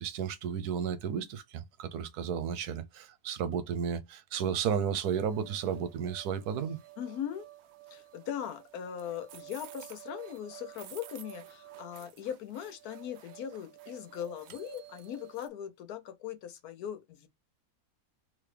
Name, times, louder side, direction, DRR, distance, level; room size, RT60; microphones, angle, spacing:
voice 1, 0.0-6.8, right 7 dB, 85° right, 1.2 m, -33 dB
sound 1, 5.0-15.5, right 13 dB, 65° right, 0.6 m, -51 dB
voice 2, 7.0-7.5 7.9-17.3, left 9 dB, 80° left, 1.2 m, -40 dB
3.8 x 3.0 x 3.2 m
omnidirectional pair, 1.6 m